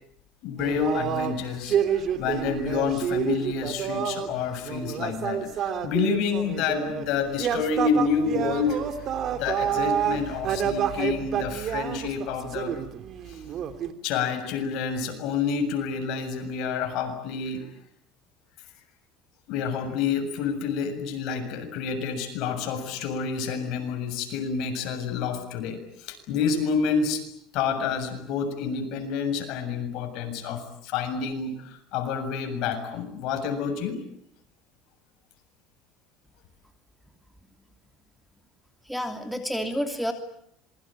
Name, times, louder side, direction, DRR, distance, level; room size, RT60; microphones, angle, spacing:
voice 1, 0.4-1.8 2.2-8.8 9.3-12.7 13.3-13.4 14.0-17.7 19.5-27.2 27.5-34.0, left 6 dB, 65° left, 6 dB, 7.2 m, -28 dB
sound 1, 0.6-4.3 4.6-7.1 7.3-13.9, right 8 dB, 45° right, 3.3 m, -29 dB
voice 2, 38.9-40.1, equal, ahead, 6 dB, 3.2 m, -29 dB
27.0 x 23.0 x 9.1 m, 0.70 s
supercardioid pair, 120°, 0 cm